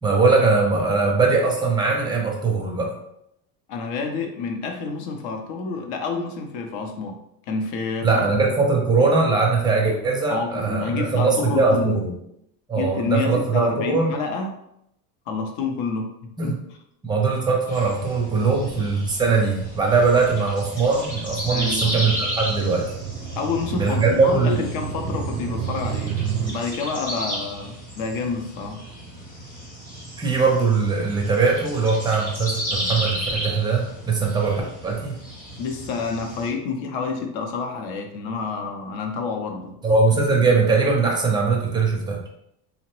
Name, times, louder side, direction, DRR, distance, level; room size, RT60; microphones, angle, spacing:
voice 1, 0.0-2.9 8.0-12.1 12.7-14.1 16.4-16.6 17.0-22.9 23.8-24.6 30.2-35.2 39.8-42.2, right 4 dB, 10° right, -1 dB, 0.5 m, -21 dB
voice 2, 3.7-7.2 7.5-8.2 10.3-12.0 12.7-14.6 15.3-16.5 18.4-18.6 21.5-22.0 23.4-26.2 26.5-28.8 35.6-39.8, left 4 dB, 65° left, 4 dB, 0.7 m, -28 dB
sound 1, 17.7-36.5, equal, 20° left, 0.8 m, -34 dB
sound 2, 17.7-26.5, right 6 dB, 90° right, 0.7 m, -33 dB
2.8 x 2.1 x 3.0 m, 0.78 s
supercardioid pair, 120°, 45 cm